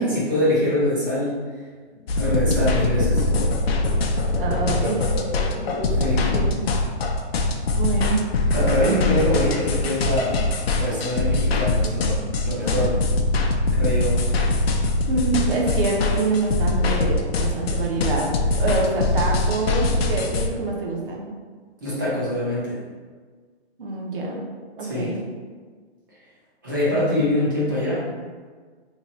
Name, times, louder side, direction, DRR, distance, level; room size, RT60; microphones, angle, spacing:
voice 1, 0.0-1.4 2.2-3.3 5.9-6.3 8.5-13.0 13.7-14.2 21.8-22.8 24.8-25.2 26.6-28.0, left 1 dB, 20° right, -7 dB, 0.5 m, -24 dB
sound 1, 1.9-6.7, equal, 25° left, 0.7 m, -35 dB
sound 2, 2.1-20.5, left 2 dB, 65° left, 0.5 m, -22 dB
voice 2, 4.4-5.2 6.3-6.6 7.8-8.3 8.8-9.2 15.1-21.3 23.8-24.4 24.8-25.2, right 3 dB, 55° right, -2 dB, 0.8 m, -26 dB
2.9 x 2.3 x 4.0 m, 1.5 s
hypercardioid pair, 170°, 33 cm